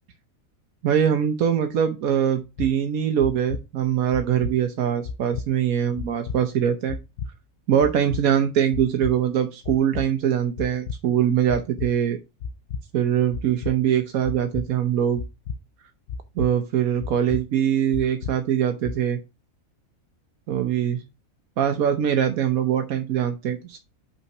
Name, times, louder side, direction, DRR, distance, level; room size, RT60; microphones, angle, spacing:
voice 1, 0.8-7.0 7.7-12.2 12.9-15.2 16.4-19.2 20.5-21.0 21.6-23.8, right 9 dB, 85° right, 6 dB, 1.3 m, -22 dB
sound 1, 2.6-2.7 3.2-3.6 4.1-4.5 5.0-5.4 6.0-6.4 6.9-7.3 7.8-8.2 8.7-9.1 9.6-10.1 10.6-11.0 11.5-11.9 12.4-12.8 13.3-13.7 14.2-14.6 15.2-15.6 16.1-16.5 17.0-17.4 17.9-18.3 18.8-18.9, left 5 dB, 75° left, 1.1 m, -31 dB
5.6 x 4.2 x 5.9 m, 0.25 s
omnidirectional pair, 1.5 m